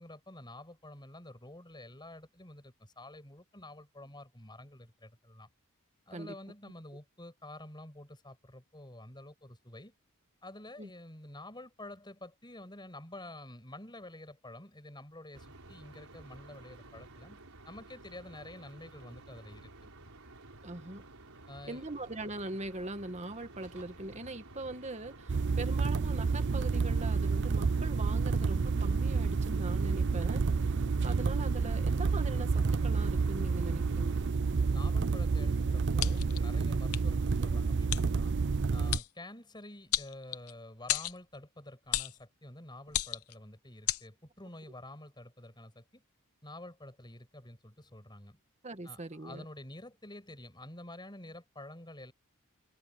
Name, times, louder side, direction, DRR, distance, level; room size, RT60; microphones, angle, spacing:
voice 1, 0.0-5.5 6.1-9.9 10.4-17.4 17.6-19.9 21.5-21.8 34.6-46.0 46.4-48.4 48.8-52.1, left 1 dB, 20° left, 6.8 m, -49 dB
sound 1, 15.3-34.3, right 2 dB, 80° right, 4.2 m, -52 dB
voice 2, 20.6-21.0 21.7-30.4 31.0-34.2 48.6-49.4, right 2 dB, 30° right, 1.9 m, -41 dB
sound 2, 25.3-39.0, right 4 dB, 55° right, 0.5 m, -29 dB
sound 3, 36.0-36.4 36.9-37.0 37.9-38.0 38.9-39.1 39.9-40.5 40.9-41.2 41.9-42.2 42.9-43.3 43.9-44.0, left 12 dB, 85° left, 0.9 m, -32 dB
head